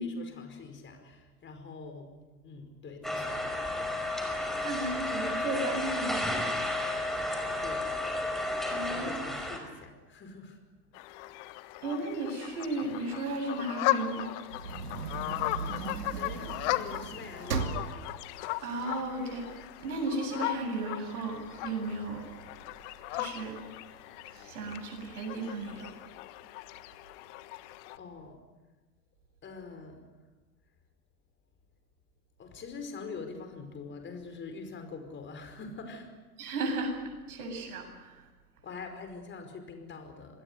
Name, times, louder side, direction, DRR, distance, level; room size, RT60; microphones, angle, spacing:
voice 1, 0.0-3.7 7.6-7.9 8.9-10.6 16.1-18.0 28.0-28.4 29.4-30.0 32.4-36.2 38.6-40.4, left 4 dB, 25° left, 7 dB, 5.2 m, -44 dB
sound 1, 3.0-9.6, left 1 dB, ahead, 5.3 m, -32 dB
voice 2, 4.6-6.4 8.7-9.2 11.8-14.3 18.6-19.5 19.8-22.2 23.1-23.6 24.5-25.9 36.4-36.9 37.3-38.1, right 2 dB, 65° right, 4 dB, 7.8 m, -34 dB
sound 2, 10.9-28.0, left 17 dB, 50° left, 1.4 m, -37 dB
sound 3, 14.5-19.7 20.2-20.3 20.6-22.7 23.2-23.7 24.3-24.5 24.7-24.8 25.3-25.9, right 5 dB, 85° right, 2.6 m, -38 dB
26.5 x 21.0 x 8.3 m, 1.2 s
hypercardioid pair, 95°, 46 cm